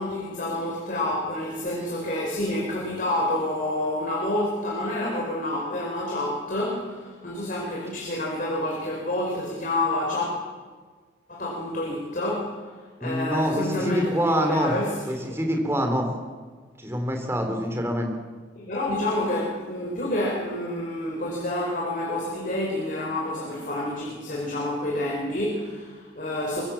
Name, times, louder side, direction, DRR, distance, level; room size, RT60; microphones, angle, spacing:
voice 1, 0.0-10.3 11.3-15.0 15.3-15.4 18.6-26.6, left 1 dB, 45° left, -2 dB, 4.8 m, -28 dB
voice 2, 13.0-14.7 15.1-16.1 16.8-18.1, equal, 15° right, 3 dB, 4.0 m, -25 dB
24.0 x 23.5 x 7.4 m, 1.5 s
head